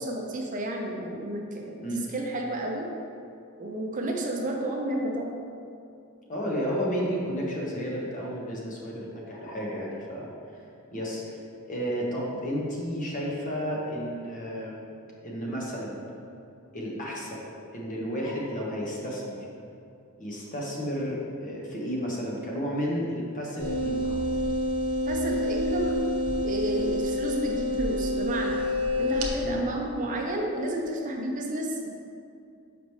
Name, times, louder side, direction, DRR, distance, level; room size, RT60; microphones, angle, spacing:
voice 1, 0.0-2.9 3.6-5.4 25.1-26.0 26.4-28.6 29.0-31.9, right 1 dB, 40° right, 0 dB, 0.6 m, -31 dB
voice 2, 6.3-10.3 10.9-14.9 15.2-15.9 16.7-19.5 20.2-24.2 26.7-26.9 29.4-29.6, equal, 40° left, -4 dB, 1.2 m, -32 dB
sound 1, 23.6-29.3, left 1 dB, 80° right, 0.8 m, -28 dB
6.7 x 5.0 x 3.2 m, 2.5 s
head